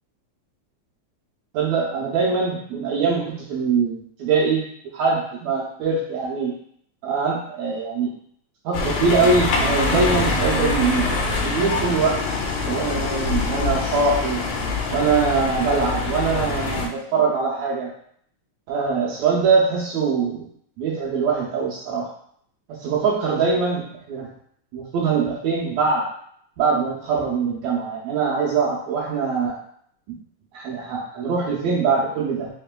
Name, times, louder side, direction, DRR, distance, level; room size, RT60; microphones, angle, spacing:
voice 1, 1.5-4.6 4.9-6.5 7.0-8.1 8.7-11.1 11.4-12.2 12.6-14.4 14.9-17.9 18.7-20.5 20.8-22.1 22.7-24.3 24.7-26.0 26.6-29.6 30.1-30.2 30.5-32.5, right 4 dB, 75° right, -4 dB, 1.8 m, -22 dB
sound 1, 8.7-16.9, left 3 dB, 80° left, 1.9 m, -24 dB
4.9 x 3.2 x 2.2 m, 0.65 s
omnidirectional pair, 3.5 m